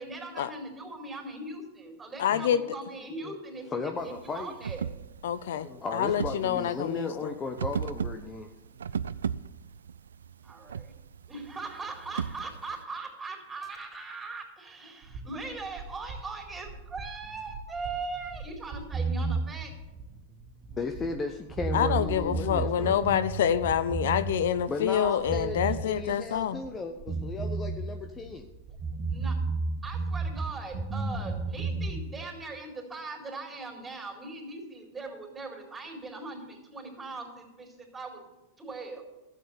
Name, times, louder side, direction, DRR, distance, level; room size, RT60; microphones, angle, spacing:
voice 1, 0.0-4.8 10.4-10.9 11.3-19.7 22.4-22.7 26.3-26.4 29.1-29.4 29.8-38.2 38.6-39.0, right 3 dB, 15° right, 2 dB, 4.1 m, -40 dB
voice 2, 2.2-2.6 5.2-7.3 21.7-26.6, left 9 dB, 75° left, 14 dB, 0.5 m, -27 dB
voice 3, 3.7-4.5 5.6-8.5 20.7-23.0 24.7-28.5, left 4 dB, 20° left, 6 dB, 0.9 m, -35 dB
sound 1, 4.0-12.8, right 7 dB, 90° right, 0.3 m, -37 dB
sound 2, 15.0-21.2 21.5-24.6 24.9-26.7 27.0-30.5 30.7-31.9, right 4 dB, 40° right, 2.0 m, -33 dB
12.0 x 8.2 x 7.1 m, 1.0 s
hypercardioid pair, 110°, 0 cm